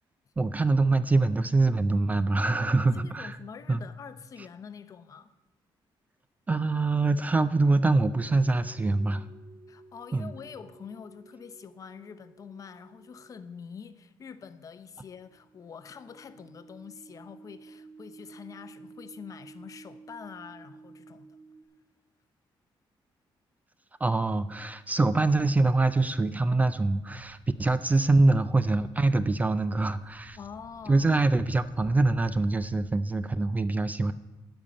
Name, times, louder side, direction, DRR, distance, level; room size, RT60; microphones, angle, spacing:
voice 1, 0.4-3.4 3.7-3.8 6.5-9.3 10.1-10.3 24.0-30.4 30.9-34.1, right 3 dB, 15° right, 0.3 m, -24 dB
voice 2, 2.4-5.3 9.7-21.4 30.4-31.1, left 6 dB, 40° left, 0.6 m, -45 dB
sound 1, 8.2-13.7 15.2-21.6, right 3 dB, 90° right, 2.1 m, -52 dB
Thump thud, 26.9-33.1, equal, 45° right, 4.0 m, -52 dB
12.5 x 5.4 x 8.6 m
cardioid pair, 155°, 9 cm